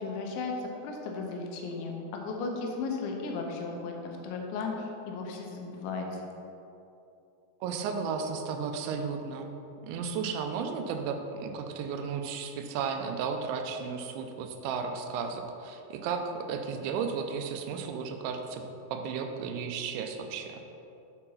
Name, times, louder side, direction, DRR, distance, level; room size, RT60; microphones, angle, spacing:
voice 1, 0.0-3.9 4.2-6.1, left 4 dB, 80° left, 1 dB, 3.1 m, -35 dB
voice 2, 7.6-9.5 9.8-18.6 18.9-20.6, right 6 dB, 85° right, 5 dB, 2.9 m, -34 dB
7.6 x 4.5 x 5.6 m, 2.8 s
omnidirectional pair, 5.3 m